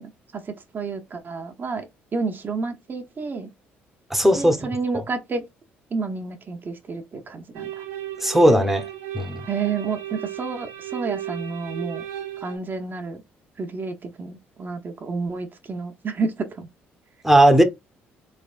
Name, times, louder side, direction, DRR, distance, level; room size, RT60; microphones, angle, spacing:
voice 1, 0.0-3.5 4.4-5.4 5.9-7.8 9.4-12.0 12.4-13.2 13.6-16.7, right 4 dB, 40° right, 0.9 m, -30 dB
voice 2, 4.1-4.6 8.2-8.8 9.1-9.4 17.2-17.6, right 1 dB, 5° right, 1.0 m, -16 dB
sound 1, 7.5-12.6, right 12 dB, 85° right, 0.9 m, -35 dB
3.5 x 3.3 x 2.5 m
supercardioid pair, 60°, 5 cm